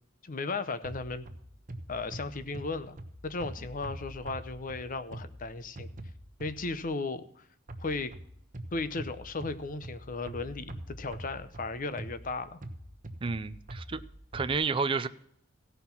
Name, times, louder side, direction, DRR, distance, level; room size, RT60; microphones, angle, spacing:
voice 1, 0.2-1.3 1.9-3.0 3.2-5.9 6.4-7.4 7.8-8.1 8.7-12.6, left 3 dB, 45° left, 12 dB, 0.7 m, -35 dB
sound 1, 0.8-6.9 7.7-14.5, right 1 dB, 40° right, 1.1 m, -45 dB
voice 2, 13.2-14.0 14.3-15.1, right 4 dB, 25° right, 11 dB, 0.4 m, -30 dB
16.0 x 5.7 x 5.9 m, 0.70 s
head